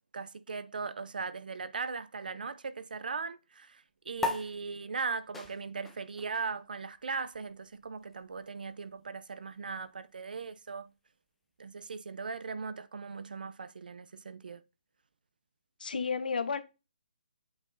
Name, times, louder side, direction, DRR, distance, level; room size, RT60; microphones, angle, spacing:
voice 1, 0.1-10.9 11.6-14.6, right 5 dB, 75° right, 0.6 m, -39 dB
sound 1, 4.2-11.0, left 3 dB, 5° left, 0.6 m, -42 dB
voice 2, 15.8-16.6, left 5 dB, 75° left, 1.0 m, -32 dB
8.0 x 5.3 x 2.7 m
hypercardioid pair, 165°, 5 cm